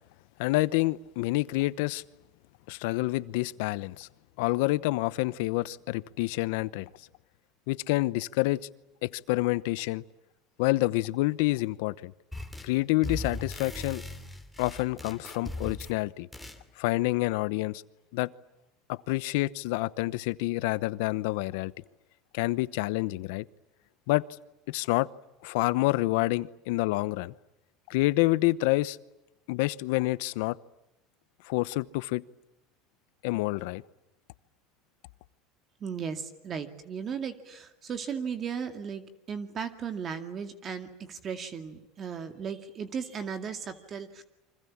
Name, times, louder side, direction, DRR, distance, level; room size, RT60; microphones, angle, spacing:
voice 1, 0.4-2.0 2.7-4.1 4.4-6.9 7.7-8.6 9.0-10.0 10.6-12.1 12.6-14.0 14.6-16.3 16.8-17.8 18.1-18.3 18.9-21.7 22.3-23.5 24.1-24.2 24.7-25.1 25.4-27.3 27.9-29.0 29.5-30.6 31.4-32.2 33.2-33.8, left 20 dB, 75° left, 18 dB, 0.9 m, -28 dB
sound 1, 12.3-12.8 13.0-16.0 16.3-16.6, left 1 dB, ahead, 3.1 m, -39 dB
voice 2, 35.8-44.2, right 6 dB, 35° right, 7 dB, 2.3 m, -36 dB
28.5 x 25.5 x 7.3 m, 0.95 s
supercardioid pair, 130°, 0 cm